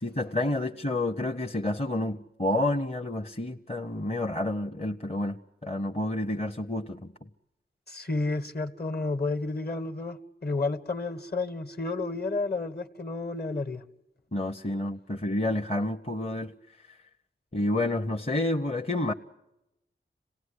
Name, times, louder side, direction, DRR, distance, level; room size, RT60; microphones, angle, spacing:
voice 1, 0.0-7.1 14.3-16.5 17.5-19.1, left 1 dB, 30° left, 0.9 m, -29 dB
voice 2, 7.9-13.8, left 3 dB, 50° left, 1.5 m, -31 dB
26.5 x 17.5 x 9.8 m
cardioid pair, 45°, 21 cm